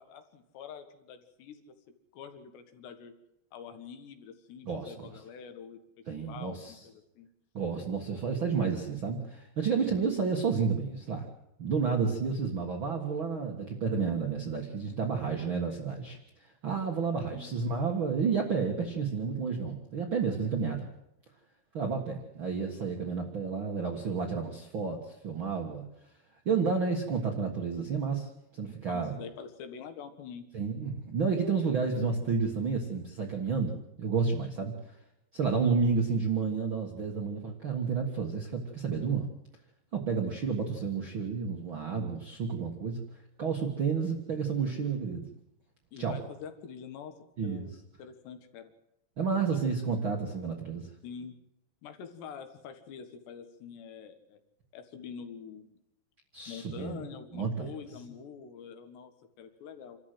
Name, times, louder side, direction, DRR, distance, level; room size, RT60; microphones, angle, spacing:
voice 1, 0.0-1.6 2.1-3.1 3.5-5.8 6.3-7.3 17.3-17.5 28.9-30.5 45.9-47.1 47.4-47.7 48.0-48.7 49.5-49.6 51.0-51.4 51.8-54.4 54.7-55.8 56.5-59.1 59.4-60.0, left 7 dB, 75° left, 8 dB, 3.7 m, -45 dB
voice 2, 4.6-5.1 6.1-6.8 7.5-11.3 11.6-20.9 21.7-25.8 26.4-29.2 30.5-34.7 35.3-39.3 39.9-43.0 43.4-45.2 46.0-46.2 47.4-47.7 49.2-50.9 56.3-57.0 57.3-57.7, right 5 dB, 80° right, 1 dB, 1.1 m, -31 dB
27.5 x 13.5 x 7.9 m, 0.84 s
omnidirectional pair, 5.1 m